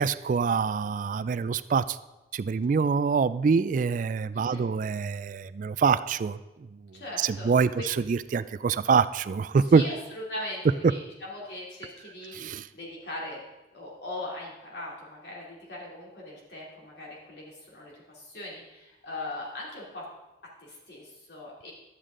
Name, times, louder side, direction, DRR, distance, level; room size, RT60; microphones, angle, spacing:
voice 1, 0.0-2.0 2.3-6.4 7.2-9.8 12.3-12.6, right 5 dB, 45° right, 15 dB, 0.3 m, -25 dB
voice 2, 4.3-4.6 6.9-7.5 9.5-13.4 13.7-20.1 20.6-21.7, left 1 dB, 70° left, -4 dB, 2.9 m, -40 dB
12.0 x 8.2 x 3.8 m, 1.0 s
head